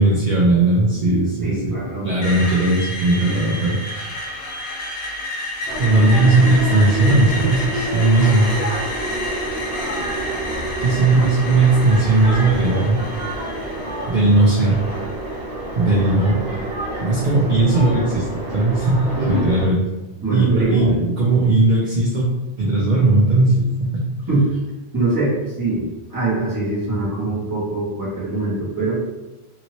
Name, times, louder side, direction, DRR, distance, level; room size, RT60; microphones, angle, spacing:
voice 1, 0.0-1.8 2.0-4.1 5.8-8.5 10.8-13.0 14.1-14.8 15.8-16.5 17.0-18.3 18.5-19.8 20.3-22.3 22.6-24.1, right 2 dB, 55° right, -4 dB, 0.6 m, -17 dB
voice 2, 1.4-2.1 11.2-11.3 19.2-19.4 20.2-21.0 24.3-24.6 24.9-29.0, right 2 dB, 20° right, -8 dB, 1.1 m, -23 dB
Screech, 2.2-16.2, left 1 dB, 75° left, 1.0 m, -31 dB
sound 1, 5.7-19.7, right 1 dB, 80° right, 1.2 m, -28 dB
2.9 x 2.6 x 3.0 m, 1.0 s
omnidirectional pair, 1.1 m